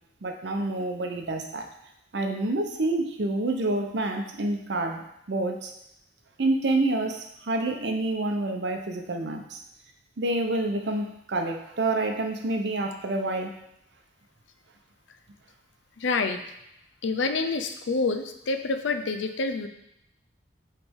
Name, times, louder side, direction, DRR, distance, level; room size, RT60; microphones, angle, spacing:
voice 1, 0.2-1.7 2.1-5.7 6.4-9.6 10.2-13.6, right 2 dB, 65° right, 4 dB, 0.7 m, -28 dB
voice 2, 16.0-16.4 17.0-19.7, left 3 dB, 80° left, 8 dB, 0.5 m, -27 dB
8.0 x 3.3 x 3.5 m, 0.81 s
head